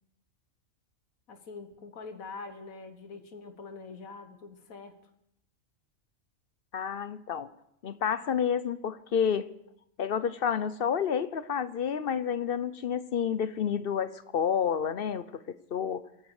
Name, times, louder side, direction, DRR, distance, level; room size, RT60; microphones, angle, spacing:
voice 1, 1.3-5.0, left 4 dB, 80° left, 8 dB, 1.8 m, -44 dB
voice 2, 6.7-7.5 7.8-9.5 10.0-16.0, left 7 dB, 55° left, 14 dB, 0.7 m, -30 dB
25.0 x 9.5 x 4.8 m, 0.78 s
omnidirectional pair, 1.4 m